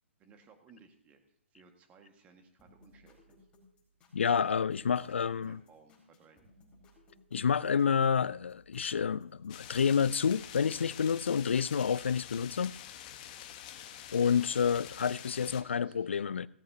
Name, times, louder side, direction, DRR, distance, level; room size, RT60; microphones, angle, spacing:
voice 1, 0.2-3.5 4.6-6.5 14.2-14.6 15.0-16.4, right 5 dB, 20° right, 1.7 m, -60 dB
sound 1, 2.6-11.7 12.0-13.6 14.4-14.5, left 1 dB, 15° left, 4.4 m, -64 dB
voice 2, 4.1-5.6 7.3-12.8 14.1-16.5, left 6 dB, 70° left, 0.4 m, -29 dB
sound 2, 9.5-15.6, left 10 dB, 35° left, 1.2 m, -47 dB
17.0 x 14.0 x 2.8 m
figure-of-eight pair, 125°, 7 cm